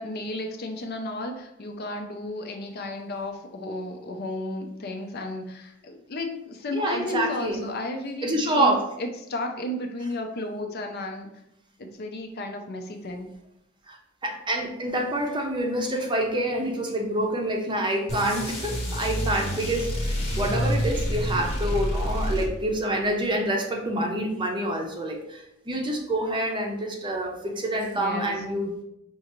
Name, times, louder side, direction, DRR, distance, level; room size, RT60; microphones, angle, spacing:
voice 1, 0.0-11.3 11.8-13.3 20.3-20.6 21.3-21.7 27.9-28.3, left 1 dB, 50° left, 4 dB, 0.5 m, -33 dB
voice 2, 6.7-7.6 8.2-8.8 13.9-14.0 14.2-28.8, right 1 dB, 25° right, 1 dB, 0.6 m, -27 dB
sound 1, 18.1-22.9, equal, 30° left, 0.9 m, -28 dB
5.3 x 2.4 x 3.0 m, 0.81 s
head